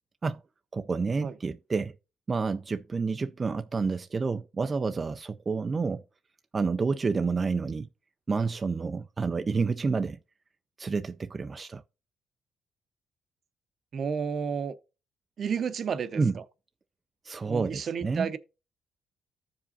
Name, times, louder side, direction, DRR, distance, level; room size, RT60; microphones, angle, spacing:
voice 1, 0.7-1.9 2.3-6.0 6.5-7.9 8.3-10.2 10.8-11.8 16.1-16.3 17.2-18.3, right 4 dB, 35° right, 0.4 m, -29 dB
voice 2, 13.9-14.7 15.4-16.2 17.5-18.4, right 6 dB, 55° right, 0.7 m, -31 dB
14.5 x 5.1 x 2.7 m
cardioid pair, 90°, 0 cm